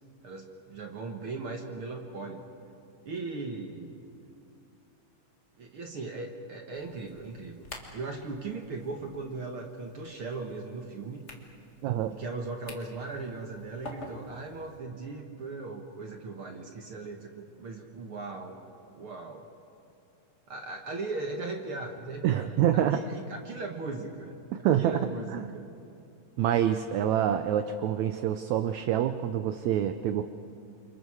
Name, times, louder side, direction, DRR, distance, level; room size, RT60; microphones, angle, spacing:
voice 1, 0.2-2.4 3.1-4.0 5.6-11.2 12.2-18.6 18.9-19.5 20.5-24.4 24.8-25.7, right 3 dB, 55° right, 2 dB, 1.7 m, -38 dB
sound 1, 6.7-14.8, left 1 dB, 25° left, 1.6 m, -49 dB
voice 2, 11.8-12.1 22.2-23.0 24.5-25.5 26.4-30.2, right 10 dB, 75° right, 9 dB, 1.7 m, -27 dB
29.0 x 26.0 x 4.8 m, 2.6 s
omnidirectional pair, 3.8 m